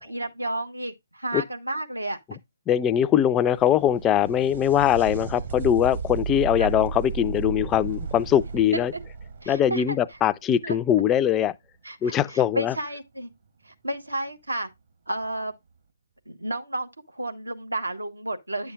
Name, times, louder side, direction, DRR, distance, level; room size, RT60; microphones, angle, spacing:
voice 1, 0.0-2.4 6.6-6.7 9.4-10.0 10.6-10.8 11.8-13.3 13.6-14.7 15.1-15.5 16.3-18.7, right 1 dB, 90° right, 1.4 m, -32 dB
voice 2, 2.7-8.9 9.5-11.5 12.0-12.7, left 10 dB, 15° left, 0.3 m, -22 dB
sound 1, 3.1-10.7 14.1-14.2 15.2-15.3, right 5 dB, 50° right, 1.1 m, -34 dB
9.7 x 6.9 x 2.5 m
figure-of-eight pair, 140°, 0 cm